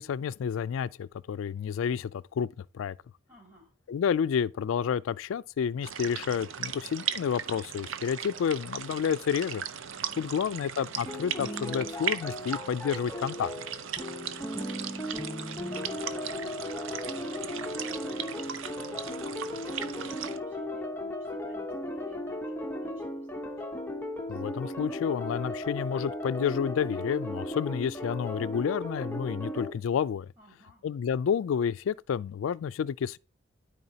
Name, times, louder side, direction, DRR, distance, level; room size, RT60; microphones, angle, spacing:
voice 1, 0.0-3.0 3.9-9.6 10.2-13.5 24.3-30.3 30.8-33.2, left 7 dB, 90° left, 0.3 m, -30 dB
voice 2, 3.3-3.7 10.0-10.5 14.5-15.3 15.6-23.6 30.4-30.8, left 2 dB, 15° right, 3.5 m, -56 dB
sound 1, 5.8-20.4, right 8 dB, 85° right, 0.6 m, -38 dB
Jeeves and Wooster minstrel scene (remake), 11.1-29.7, left 1 dB, 10° left, 0.9 m, -36 dB
12.5 x 4.7 x 2.8 m
head